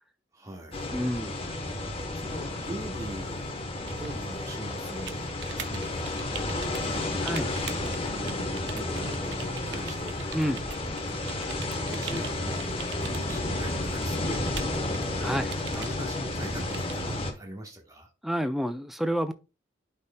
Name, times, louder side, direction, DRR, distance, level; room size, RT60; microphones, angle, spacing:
voice 1, 0.3-0.9 1.6-3.6 4.0-5.3 5.6-10.4 11.0-14.8 15.2-18.1, right 1 dB, 15° right, 1.2 m, -42 dB
sound 1, 0.7-17.3, left 2 dB, 30° left, 1.0 m, -32 dB
voice 2, 0.9-1.4 7.2-7.5 10.3-10.7 15.2-15.5 18.2-19.3, equal, ahead, 0.4 m, -29 dB
sound 2, 3.9-17.0, right 7 dB, 65° right, 0.6 m, -44 dB
12.0 x 4.2 x 2.2 m
head